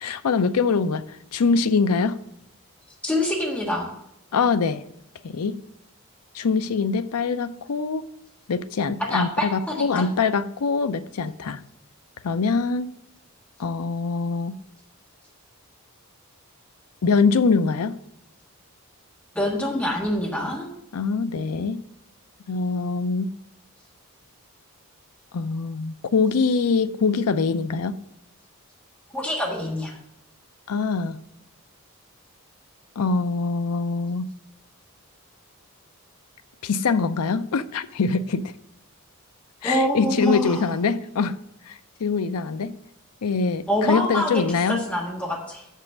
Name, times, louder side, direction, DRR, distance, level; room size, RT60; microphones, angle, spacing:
voice 1, 0.0-1.0 1.3-2.2 4.3-4.8 5.2-5.6 6.3-8.1 8.5-11.6 12.2-12.9 13.6-14.6 17.0-18.0 20.9-21.8 22.5-23.3 25.3-28.0 30.7-31.2 33.0-34.3 36.6-38.5 39.6-41.4 41.7-42.7 43.2-44.8, left 4 dB, 80° left, 0.5 m, -23 dB
voice 2, 3.0-3.9 9.0-10.1 19.3-20.7 29.1-30.0 39.6-40.6 43.7-45.6, left 1 dB, 5° left, 1.5 m, -26 dB
7.1 x 5.5 x 7.2 m
head